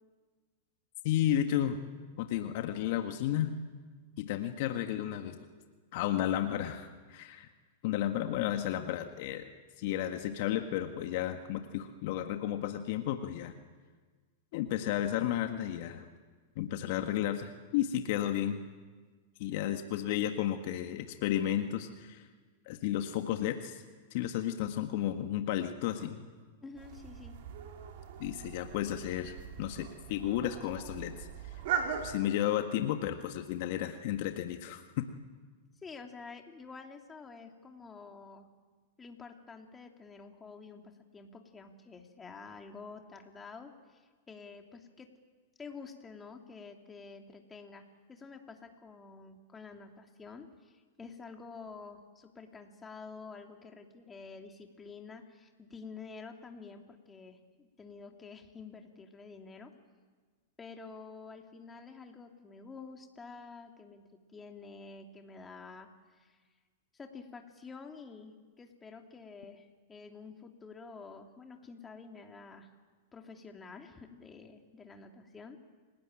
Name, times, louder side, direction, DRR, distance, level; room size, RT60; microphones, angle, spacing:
voice 1, 1.0-1.8 2.2-3.5 4.2-5.5 5.9-7.5 7.8-9.5 9.8-13.5 14.5-16.1 16.5-18.6 19.4-22.3 22.6-23.8 24.1-26.2 28.2-31.6 32.0-35.1, left 11 dB, 55° left, 6 dB, 1.7 m, -33 dB
voice 2, 26.6-27.4 35.8-38.5 39.0-45.1 45.6-59.7 60.6-66.4 66.9-72.7 73.1-75.6, left 4 dB, 15° left, 3 dB, 3.0 m, -49 dB
sound 1, 26.8-32.1, right 8 dB, 60° right, 3.8 m, -40 dB
29.0 x 19.5 x 9.1 m, 1.5 s
hypercardioid pair, 110°, 0 cm